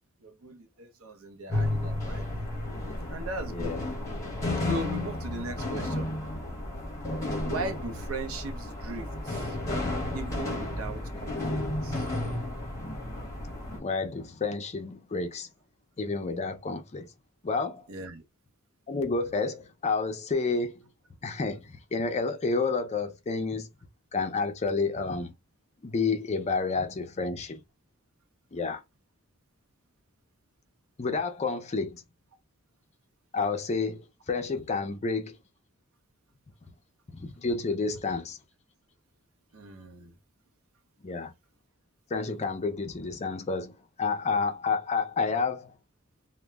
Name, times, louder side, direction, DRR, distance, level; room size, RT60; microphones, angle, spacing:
voice 1, 0.2-2.7 3.1-3.7 4.6-6.1 7.4-9.6 10.1-12.1 17.9-18.2 39.5-40.1, right 2 dB, 75° right, 0.6 m, -38 dB
sound 1, 1.5-13.8, left 1 dB, 15° left, 0.9 m, -32 dB
voice 2, 3.5-3.9 13.7-15.5 16.0-17.1 17.4-17.9 18.9-20.8 21.2-23.7 24.1-25.3 25.8-27.6 28.5-28.8 31.0-32.0 33.3-35.4 37.1-38.4 41.0-41.3 42.1-45.7, left 4 dB, 30° left, 0.4 m, -30 dB
2.1 x 2.0 x 3.3 m
head